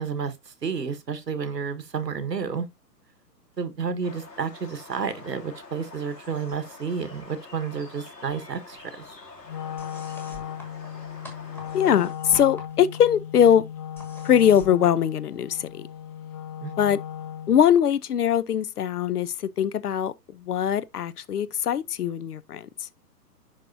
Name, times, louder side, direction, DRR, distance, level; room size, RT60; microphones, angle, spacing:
voice 1, 0.0-2.7 3.6-9.0 16.6-16.7, right 6 dB, 85° right, 1.4 m, -31 dB
sound 1, 4.0-12.1, left 3 dB, 90° left, 2.8 m, -46 dB
sound 2, 5.9-6.7 7.0-8.0 8.3-15.8, left 1 dB, 5° left, 1.3 m, -49 dB
Wind instrument woodwind instrument, 9.4-17.7, left 9 dB, 25° left, 0.8 m, -37 dB
voice 2, 11.7-13.6 14.2-15.9 16.8-17.0 17.5-22.9, left 9 dB, 70° left, 0.7 m, -22 dB
10.5 x 3.6 x 2.6 m
figure-of-eight pair, 135°, 48 cm